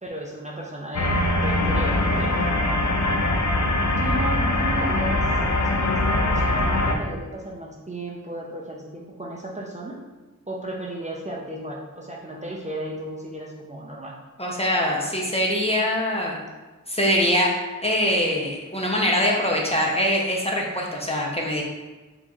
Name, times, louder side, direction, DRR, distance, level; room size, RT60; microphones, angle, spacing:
voice 1, 0.0-2.3 4.0-5.3 5.6-10.0 10.5-14.1, right 1 dB, 20° right, -3 dB, 0.5 m, -34 dB
sound 1, 0.9-6.9, left 1 dB, 65° left, 0.5 m, -22 dB
voice 2, 14.4-16.4 16.9-21.6, equal, 20° left, -2 dB, 0.6 m, -23 dB
4.3 x 2.9 x 2.4 m, 1.2 s
wide cardioid pair, 75°, 32 cm